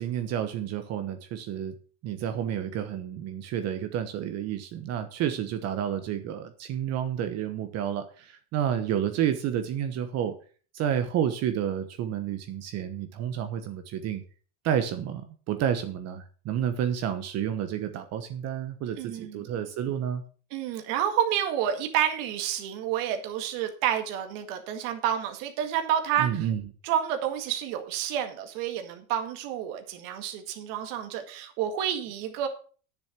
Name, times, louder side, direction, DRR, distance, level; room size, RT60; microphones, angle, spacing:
voice 1, 0.0-1.7 2.0-10.3 10.7-14.2 14.6-20.2 26.2-26.6, right 9 dB, 45° right, 8 dB, 1.1 m, -30 dB
voice 2, 19.0-19.5 20.5-26.5 26.8-32.5, right 10 dB, 60° right, 6 dB, 2.0 m, -29 dB
9.8 x 7.2 x 6.0 m, 0.40 s
supercardioid pair, 135°, 37 cm